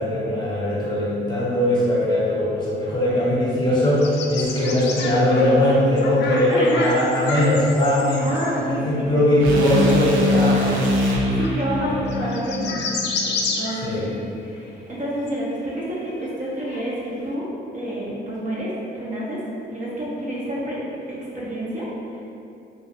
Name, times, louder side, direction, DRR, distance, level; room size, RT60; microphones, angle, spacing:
voice 1, 0.0-8.3 8.7-10.9 11.8-12.0 13.8-14.1, left 1 dB, 20° left, -8 dB, 0.9 m, -20 dB
sound 1, 4.0-8.5 9.9-10.0 10.3-14.4 14.9-15.0 15.2-16.8, left 3 dB, 60° left, 0.4 m, -30 dB
voice 2, 6.5-7.0 8.2-9.1 11.4-12.8 13.2-16.1 16.4-17.0 17.2-17.4 17.7-19.4 19.7-20.8 21.3-22.2, equal, 40° right, -7 dB, 0.7 m, -28 dB
sound 2, 9.4-13.6, left 1 dB, 80° right, 0.5 m, -23 dB
2.3 x 2.3 x 3.3 m, 2.7 s
cardioid pair, 90°, 20 cm